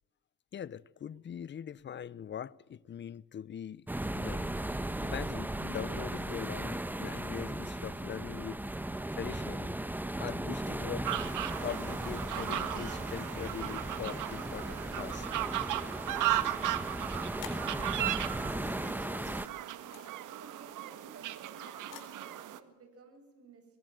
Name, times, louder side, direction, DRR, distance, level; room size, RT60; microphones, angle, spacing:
voice 1, 0.5-4.5 4.9-8.6 9.1-9.8 10.2-11.1 11.6-15.3, left 9 dB, 35° left, 0.7 m, -42 dB
sound 1, 3.9-19.5, right 1 dB, 5° right, 1.0 m, -37 dB
sound 2, 11.0-22.6, right 14 dB, 70° right, 1.7 m, -36 dB
sound 3, 14.8-15.5 15.9-16.0 16.2-19.2 19.5-22.2, left 11 dB, 80° left, 4.3 m, -52 dB
voice 2, 19.8-23.8, right 4 dB, 45° right, 7.5 m, -55 dB
23.5 x 21.5 x 7.8 m
cardioid pair, 105°, 32 cm